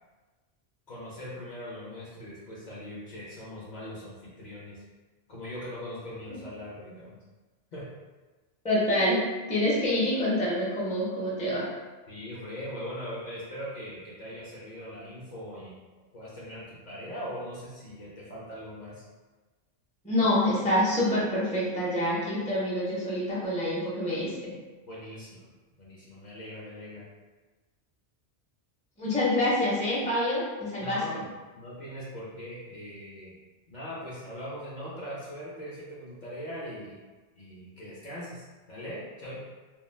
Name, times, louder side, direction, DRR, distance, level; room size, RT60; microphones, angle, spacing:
voice 1, 0.9-4.8 5.3-7.1 7.7-7.9 12.1-15.9 16.1-19.0 24.9-25.4 25.8-27.0 30.8-33.4 33.7-37.0 37.4-39.4, equal, 50° left, -7 dB, 0.6 m, -40 dB
voice 2, 8.6-9.2 9.5-11.7 20.0-24.5 29.0-31.0, left 1 dB, 10° left, -7 dB, 0.4 m, -26 dB
2.3 x 2.2 x 3.1 m, 1.3 s
omnidirectional pair, 1.1 m